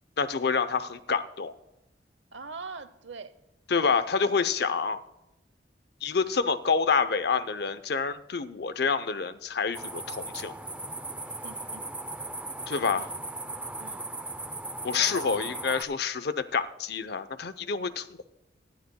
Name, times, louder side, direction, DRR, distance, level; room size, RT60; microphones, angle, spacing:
voice 1, 0.2-1.5 3.7-5.0 6.0-10.5 12.7-13.1 14.8-18.3, left 5 dB, 60° left, 13 dB, 0.7 m, -27 dB
voice 2, 2.3-3.3 11.3-11.9 12.9-13.1 13.8-14.1 15.0-15.3, right 4 dB, 85° right, 13 dB, 0.9 m, -43 dB
sound 1, 9.7-15.8, right 2 dB, 5° right, 0.5 m, -37 dB
18.5 x 13.5 x 2.3 m, 0.91 s
head